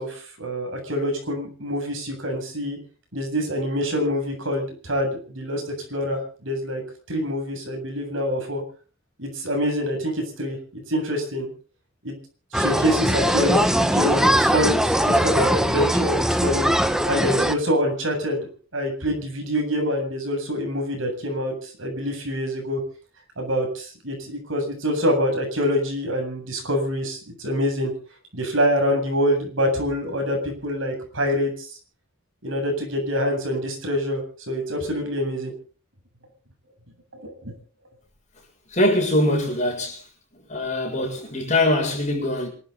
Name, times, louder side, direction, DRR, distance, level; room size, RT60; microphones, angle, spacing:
voice 1, 0.0-2.8 3.1-5.6 5.9-6.8 7.1-8.6 9.2-11.5 12.0-12.1 12.5-18.5 18.7-22.8 23.4-27.9 28.3-31.7 32.4-35.5 37.1-37.5, equal, 65° right, 7.9 m, -26 dB
sound 1, 12.5-17.5, equal, 5° right, 1.1 m, -21 dB
voice 2, 38.7-40.0 40.5-42.5, left 1 dB, 35° left, 7.3 m, -22 dB
27.0 x 12.5 x 4.1 m
head